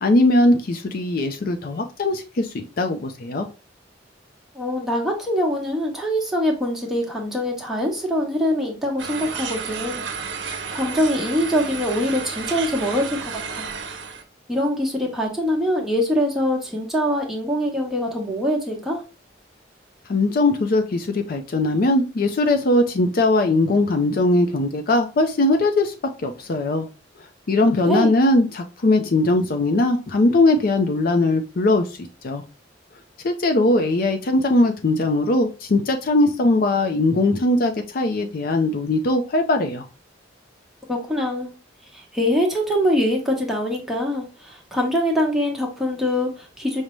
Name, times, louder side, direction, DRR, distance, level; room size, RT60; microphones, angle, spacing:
voice 1, 0.0-3.5 20.1-25.9 26.2-26.9 27.5-31.8 32.2-32.4 33.2-39.9, left 2 dB, 50° left, 6 dB, 0.5 m, -20 dB
voice 2, 4.5-10.0 10.7-13.2 13.5-13.7 14.5-19.0 27.6-28.1 40.9-41.5 41.9-46.8, equal, ahead, -1 dB, 0.9 m, -23 dB
sound 1, 9.0-14.2, right 5 dB, 75° right, 0.6 m, -32 dB
5.1 x 2.1 x 3.0 m, 0.32 s
head